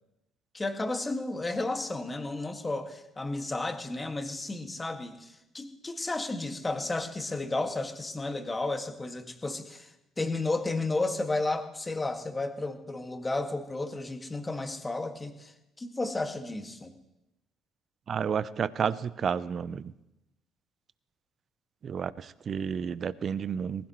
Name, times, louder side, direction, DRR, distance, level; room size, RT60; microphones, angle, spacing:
voice 1, 0.5-9.9 10.2-15.5 15.8-16.9, left 2 dB, 20° left, 6 dB, 2.0 m, -32 dB
voice 2, 18.1-19.9 21.8-23.9, right 7 dB, 50° right, 18 dB, 0.6 m, -31 dB
20.0 x 15.5 x 3.2 m, 0.91 s
hypercardioid pair, 50°, 0 cm